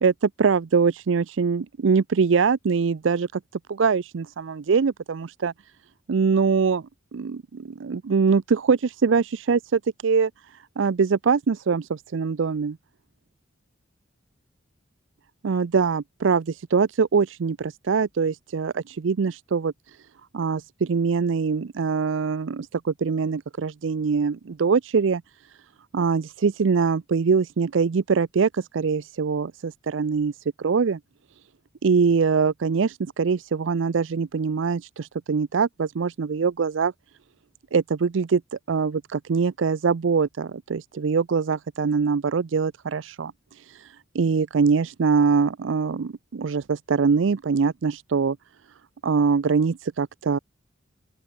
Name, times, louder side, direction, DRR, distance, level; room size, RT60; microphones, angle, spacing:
voice 1, 0.0-3.4 3.7-5.5 6.1-6.8 7.1-10.3 10.8-12.8 15.4-19.7 20.3-25.2 25.9-31.0 31.8-36.9 37.7-48.4 49.0-50.4, right 5 dB, 75° right, 0.5 m, -23 dB
open air
head